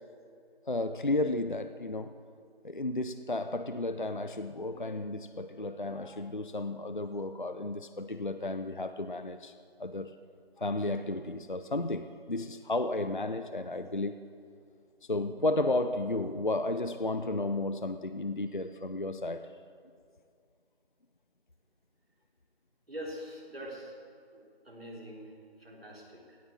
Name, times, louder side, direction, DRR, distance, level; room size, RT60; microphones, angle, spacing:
voice 1, 0.6-2.1 2.6-9.5 9.8-10.1 10.6-14.1 15.1-19.5, left 2 dB, 50° left, 10 dB, 0.5 m, -33 dB
voice 2, 22.9-24.0 24.3-26.4, equal, 65° right, -3 dB, 4.3 m, -44 dB
16.0 x 9.2 x 7.3 m, 2.3 s
figure-of-eight pair, 180°, 32 cm